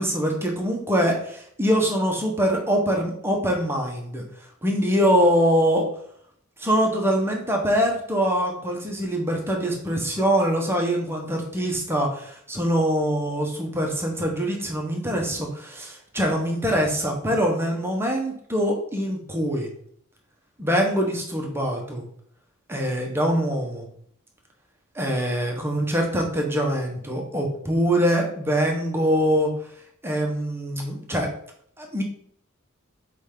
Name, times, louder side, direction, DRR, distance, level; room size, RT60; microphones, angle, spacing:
voice 1, 0.0-4.2 4.6-5.9 6.6-19.7 20.6-22.0 22.7-23.8 24.9-29.5 30.0-31.3 31.8-32.0, equal, 10° right, 1 dB, 1.1 m, -23 dB
8.0 x 3.3 x 3.8 m, 0.64 s
head